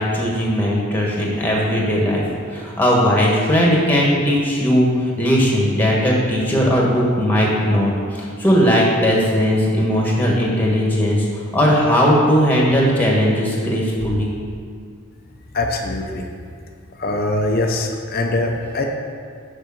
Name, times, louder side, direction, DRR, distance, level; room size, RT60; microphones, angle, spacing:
voice 1, 0.0-14.3, equal, 10° left, -3 dB, 1.4 m, -18 dB
voice 2, 15.5-16.3 17.0-18.9, left 2 dB, 45° left, 3 dB, 0.7 m, -22 dB
6.5 x 5.7 x 7.2 m, 2.1 s
head